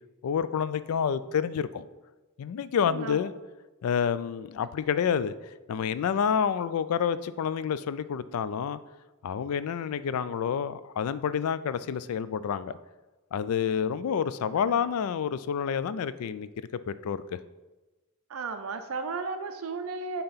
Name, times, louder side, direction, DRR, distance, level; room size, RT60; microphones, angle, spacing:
voice 1, 0.2-1.8 2.4-3.3 3.8-5.3 5.7-8.8 9.2-12.7 13.3-16.5 16.9-17.4, left 7 dB, 85° left, 15 dB, 0.3 m, -28 dB
voice 2, 2.9-3.2 14.7-14.8 18.3-20.2, right 4 dB, 75° right, 8 dB, 0.5 m, -34 dB
8.7 x 2.9 x 5.6 m, 1.2 s
head